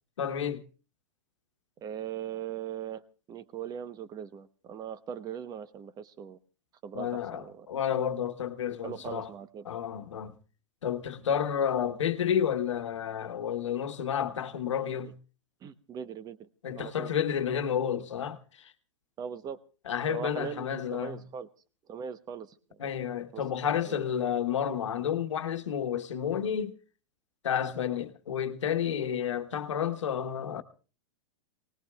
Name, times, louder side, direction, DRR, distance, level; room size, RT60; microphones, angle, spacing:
voice 1, 0.2-0.6 6.9-9.3 9.7-10.3 10.8-15.1 16.6-18.7 19.9-21.2 22.8-26.7 27.4-30.6, left 8 dB, 90° left, 1.2 m, -31 dB
voice 2, 1.8-3.0 3.3-6.4 6.8-7.7 8.8-9.7 15.6-16.5 16.8-17.1 19.2-19.6 20.1-21.5 21.9-22.9 23.3-24.0, right 8 dB, 25° right, 0.9 m, -40 dB
25.0 x 19.0 x 2.3 m
hypercardioid pair, 125°, 15 cm